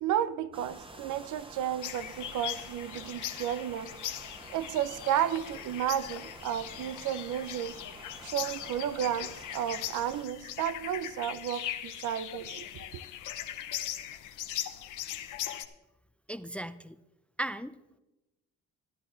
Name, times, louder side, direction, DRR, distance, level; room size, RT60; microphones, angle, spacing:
voice 1, 0.0-4.0 4.5-7.8 8.2-13.0, right 10 dB, 80° right, 0.6 m, -32 dB
sound 1, 0.5-10.3, right 2 dB, 15° right, 1.1 m, -49 dB
sound 2, 1.8-15.6, left 11 dB, 85° left, 0.8 m, -40 dB
voice 2, 16.3-17.0 17.4-18.0, right 1 dB, 5° left, 0.4 m, -37 dB
13.0 x 11.0 x 3.9 m
cardioid pair, 90°, 30 cm